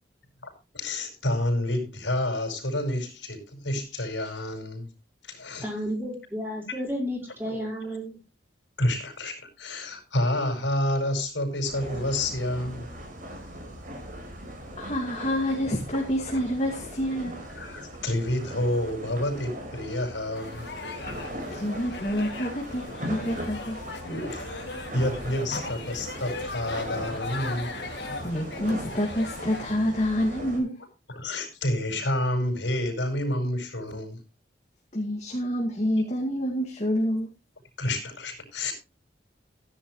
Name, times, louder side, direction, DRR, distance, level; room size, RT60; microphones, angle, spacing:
voice 1, 0.4-4.9 5.2-5.7 7.5-7.7 8.8-12.9 16.3-16.4 17.5-20.7 24.0-24.6 24.9-28.3 31.1-34.2 37.8-38.7, left 1 dB, 80° left, 5.2 m, -29 dB
voice 2, 5.6-8.2, equal, 10° right, 5.1 m, -32 dB
sound 1, 11.6-30.6, equal, 45° right, 4.8 m, -39 dB
voice 3, 14.8-17.3 21.5-23.8 28.2-30.8 34.9-37.3, equal, 35° left, 2.4 m, -27 dB
sound 2, 20.3-29.8, left 3 dB, 65° left, 2.4 m, -38 dB
15.0 x 10.5 x 3.2 m
head